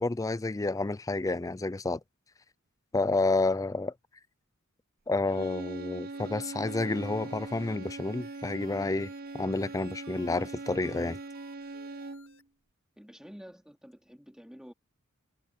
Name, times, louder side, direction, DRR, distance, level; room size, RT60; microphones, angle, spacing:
voice 1, 0.0-2.0 2.9-3.9 5.1-11.2, left 3 dB, 15° left, 0.4 m, -30 dB
sound 1, 5.3-12.4, right 3 dB, 45° right, 0.6 m, -41 dB
sound 2, 6.1-12.4, left 5 dB, 65° left, 2.1 m, -60 dB
voice 2, 13.0-14.7, equal, 5° right, 2.5 m, -49 dB
head